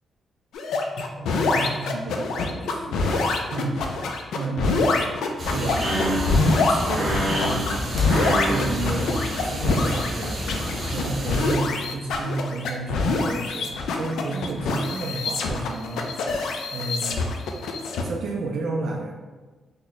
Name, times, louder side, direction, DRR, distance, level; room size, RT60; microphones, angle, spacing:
sound 1, 0.5-18.0, left 3 dB, 85° left, 0.3 m, -25 dB
voice 1, 1.1-4.8 5.5-6.3 6.7-7.7 8.1-16.1 16.7-17.3 18.0-19.1, right 3 dB, 60° right, -1 dB, 0.4 m, -32 dB
sound 2, 5.4-11.6, equal, 30° right, 0.8 m, -28 dB
2.9 x 2.2 x 4.0 m, 1.3 s
wide cardioid pair, 175°, 0 cm